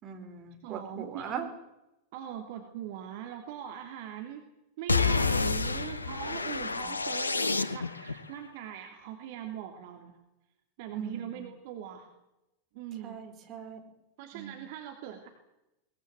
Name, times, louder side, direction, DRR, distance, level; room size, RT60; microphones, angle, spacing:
voice 1, 0.0-1.5 6.8-6.9 10.9-11.4 13.0-13.8 14.3-14.5, right 7 dB, 30° right, 4 dB, 4.9 m, -40 dB
voice 2, 0.6-1.5 2.1-4.4 4.8-10.1 10.8-12.1 12.7-13.2 14.2-15.3, right 10 dB, 50° right, 3 dB, 3.2 m, -41 dB
sound 1, 4.9-8.1, left 4 dB, 80° left, 0.9 m, -29 dB
22.5 x 20.5 x 8.0 m, 0.91 s
figure-of-eight pair, 90°, 0 cm